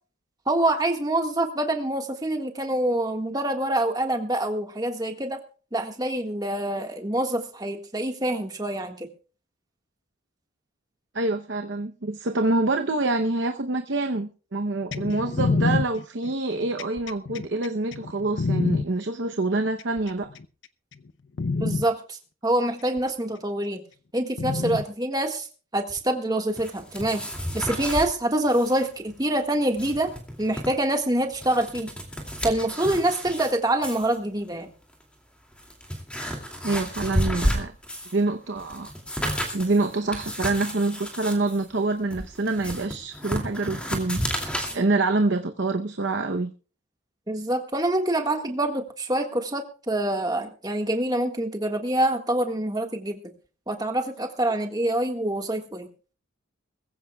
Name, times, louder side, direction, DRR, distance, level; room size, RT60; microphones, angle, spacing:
voice 1, 0.4-5.4 5.7-9.1 21.6-23.8 24.1-25.5 25.7-27.2 27.5-30.1 30.4-31.9 32.4-34.7 47.3-53.2 53.7-55.9, right 1 dB, 20° right, 4 dB, 1.7 m, -26 dB
voice 2, 11.1-20.3 36.6-37.7 38.1-38.9 39.5-46.5, right 2 dB, 60° right, 6 dB, 0.8 m, -26 dB
sound 1, 14.9-18.8 19.8-20.4 20.9-21.1 21.4-21.8 23.0-23.1 24.4-24.8 26.0-26.1, left 3 dB, 65° left, 0.6 m, -26 dB
sound 2, 26.6-28.1 28.5-28.8 29.1-29.2 29.6-30.7 31.2-33.5 33.8-34.2 34.9-35.0 35.5-38.2 38.6-44.8, equal, 5° left, 2.5 m, -31 dB
21.5 x 15.5 x 2.3 m, 0.37 s
head